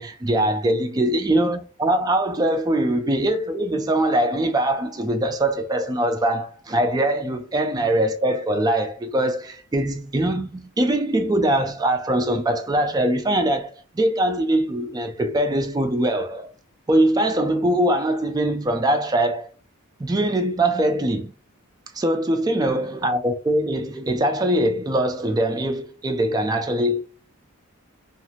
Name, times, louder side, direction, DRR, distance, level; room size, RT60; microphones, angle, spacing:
voice 1, 0.0-16.5 16.9-19.5 20.0-21.3 21.9-27.1, right 1 dB, 15° right, 0.3 m, -22 dB
2.5 x 2.4 x 3.0 m
head